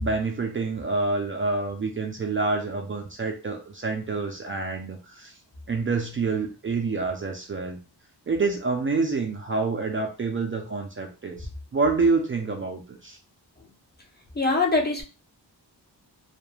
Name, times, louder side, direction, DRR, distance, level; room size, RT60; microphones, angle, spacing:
voice 1, 0.0-5.3 5.7-7.8 8.3-11.5 11.7-13.2, right 3 dB, 30° right, 2 dB, 0.4 m, -27 dB
voice 2, 14.4-15.0, left 3 dB, 25° left, 2 dB, 0.6 m, -22 dB
2.3 x 2.1 x 3.1 m, 0.33 s
wide cardioid pair, 90°, 41 cm